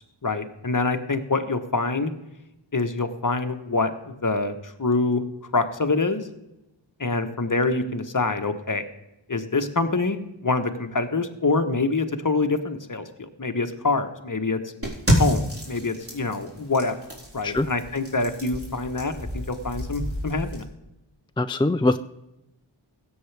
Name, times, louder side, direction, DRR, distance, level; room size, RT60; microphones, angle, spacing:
voice 1, 0.2-2.1 2.7-5.2 5.5-6.2 7.0-8.8 9.3-14.6 15.2-16.9 17.3-19.2 19.5-20.6, left 3 dB, 45° left, 7 dB, 1.1 m, -25 dB
sound 1, 14.8-20.6, equal, 30° right, 3.9 m, -29 dB
voice 2, 21.4-22.0, left 2 dB, 10° left, 11 dB, 0.3 m, -22 dB
17.0 x 8.1 x 3.4 m, 0.91 s
wide cardioid pair, 45°, 46 cm